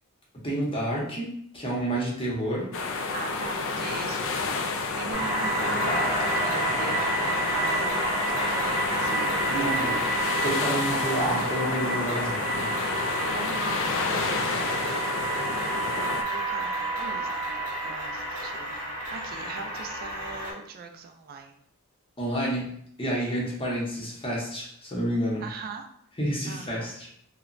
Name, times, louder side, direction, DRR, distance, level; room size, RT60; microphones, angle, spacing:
voice 1, 0.4-2.7 9.5-10.0 10.4-12.7 22.2-25.4 26.2-27.1, right 1 dB, 25° left, -4 dB, 0.7 m, -30 dB
sound 1, 2.7-16.2, left 3 dB, 60° left, 0.3 m, -29 dB
voice 2, 3.1-10.0 10.9-11.0 13.3-14.8 15.1-15.3 15.8-18.8 19.1-21.6 25.4-25.8 26.5-26.9, right 4 dB, 45° right, 5 dB, 0.3 m, -41 dB
sound 2, 5.1-20.5, right 2 dB, 70° right, 0.8 m, -30 dB
2.9 x 2.1 x 2.5 m, 0.67 s
head